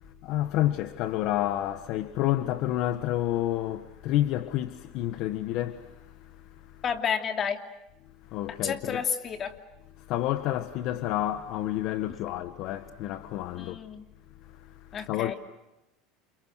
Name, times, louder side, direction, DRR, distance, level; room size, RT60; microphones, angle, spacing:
voice 1, 0.0-6.8 8.2-9.0 10.0-13.8 14.4-15.3, left 13 dB, 60° left, 1.4 m, -30 dB
voice 2, 6.8-7.6 8.6-9.5 13.5-14.0 14.9-15.3, left 7 dB, 30° left, 2.8 m, -30 dB
29.5 x 29.5 x 6.5 m
supercardioid pair, 130°, 0 cm